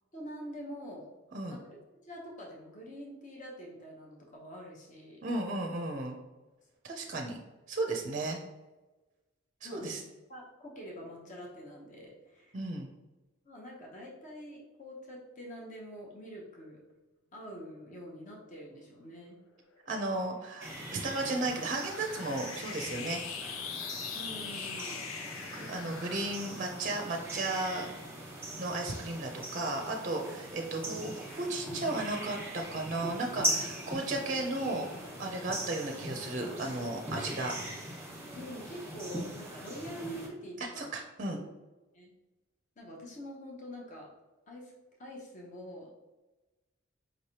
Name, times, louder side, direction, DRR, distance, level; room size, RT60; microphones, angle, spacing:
voice 1, 0.1-1.1 1.5-1.8 2.0-5.2 9.6-10.0 10.3-12.6 13.4-16.8 17.3-19.4 24.1-25.1 38.3-40.9 41.3-41.5 41.9-42.1 42.8-44.1 44.5-44.7 45.0-45.9, equal, 35° left, -2 dB, 0.8 m, -45 dB
voice 2, 5.2-6.2 6.8-7.4 7.7-8.4 9.6-10.0 12.5-12.9 19.9-23.2 25.5-27.9 28.6-37.5 40.6-41.4, right 2 dB, 35° right, 2 dB, 0.5 m, -34 dB
sound 1, 19.7-28.3, left 7 dB, 90° left, 0.4 m, -43 dB
sound 2, 20.6-40.3, right 1 dB, 10° right, 1.2 m, -40 dB
5.1 x 3.2 x 2.8 m, 1.1 s
head